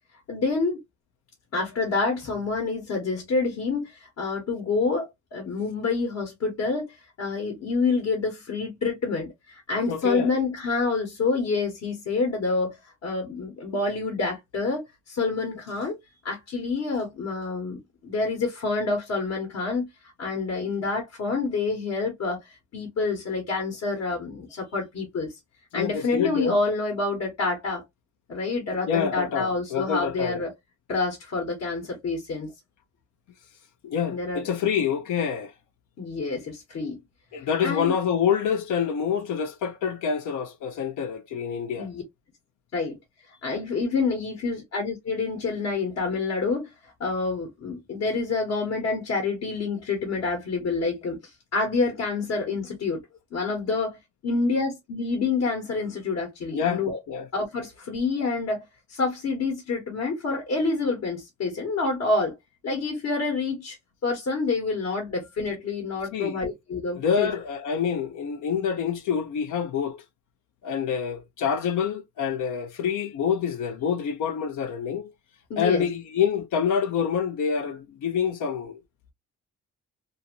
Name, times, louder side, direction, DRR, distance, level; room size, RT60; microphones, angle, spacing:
voice 1, 0.3-0.8 1.5-12.8 13.0-16.0 16.2-19.9 20.2-25.4 25.7-27.8 28.3-30.5 30.9-32.5 34.1-34.5 36.0-37.0 37.6-37.9 41.8-42.0 42.7-43.0 43.4-46.7 47.0-53.0 53.3-54.0 54.2-57.0 57.3-58.6 58.9-62.3 62.6-63.8 64.0-67.3 75.5-75.9, left 3 dB, 60° left, 1.2 m, -27 dB
voice 2, 9.9-10.3 25.7-26.6 28.7-30.4 33.8-35.5 36.8-36.9 37.3-41.9 56.5-57.3 66.1-66.4 66.9-70.0 70.6-75.1 75.6-78.8, left 7 dB, 75° left, 0.8 m, -27 dB
2.7 x 2.6 x 2.8 m
cardioid pair, 90°, 30 cm